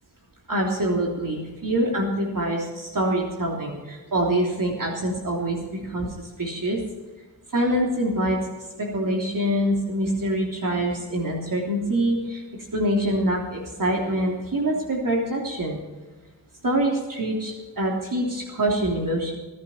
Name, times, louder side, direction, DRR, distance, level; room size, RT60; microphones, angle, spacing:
voice 1, 0.5-6.1 6.4-6.8 7.5-8.4 8.8-15.8 16.6-19.3, right 1 dB, 50° right, -2 dB, 3.4 m, -25 dB
21.0 x 10.5 x 4.5 m, 1.2 s
wide cardioid pair, 75°, 41 cm